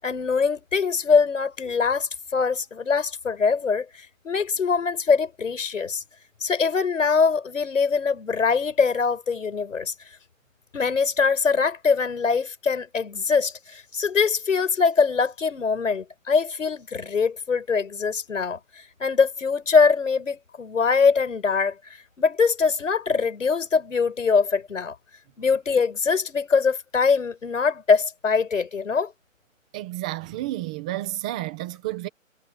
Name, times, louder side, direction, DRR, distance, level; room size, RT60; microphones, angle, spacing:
voice 1, 0.0-6.0 6.4-9.9 10.7-21.8 22.2-24.9 25.4-29.1, left 5 dB, 65° left, 6.7 m, -23 dB
voice 2, 29.7-32.1, right 15 dB, 5° right, 0.7 m, -31 dB
hypercardioid pair, 160°, 40 cm